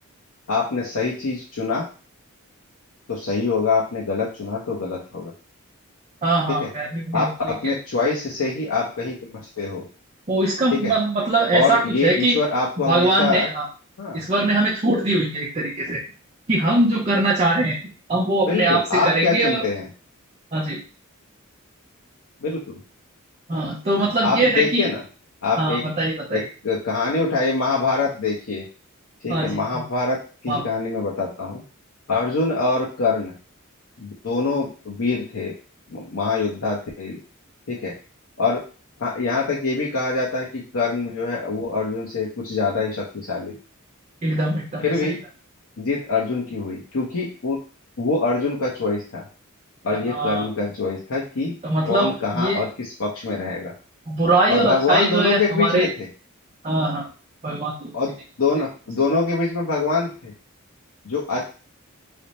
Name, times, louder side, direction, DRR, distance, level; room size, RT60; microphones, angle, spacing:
voice 1, 0.5-1.9 3.1-5.3 6.5-6.7 7.1-9.8 10.7-10.9 11.5-13.5 14.0-14.2 18.5-19.9 22.4-22.8 24.2-25.0 25.4-25.8 26.3-28.6 29.2-30.2 30.4-31.6 32.1-33.3 34.0-35.5 35.9-37.2 37.7-37.9 38.4-38.6 39.0-43.5 44.8-45.2 45.8-47.6 48.0-49.2 49.8-51.6 51.8-53.7 54.5-56.1 57.9-60.3 61.0-61.5, left 4 dB, 70° left, -4 dB, 0.7 m, -24 dB
voice 2, 6.2-7.7 10.3-12.4 12.8-13.7 14.1-16.0 16.5-17.8 18.1-19.6 20.5-20.8 23.5-24.9 25.6-26.5 29.3-29.8 30.5-30.7 44.2-44.9 49.9-50.5 51.6-52.6 54.1-55.9 56.6-57.0 57.4-58.0, right 2 dB, 30° right, -3 dB, 0.6 m, -22 dB
3.3 x 2.1 x 4.0 m, 0.38 s
head